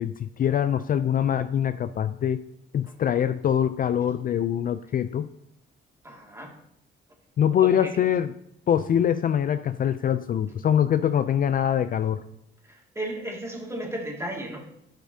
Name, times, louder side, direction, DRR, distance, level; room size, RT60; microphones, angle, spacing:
voice 1, 0.0-2.4 2.7-5.3 7.4-8.3 8.7-12.2, left 9 dB, 45° left, 12 dB, 0.4 m, -24 dB
voice 2, 6.0-6.5 7.6-7.9 12.6-14.6, right 1 dB, 15° right, -1 dB, 2.2 m, -34 dB
11.5 x 6.0 x 2.8 m, 0.78 s
cardioid pair, 90°, 20 cm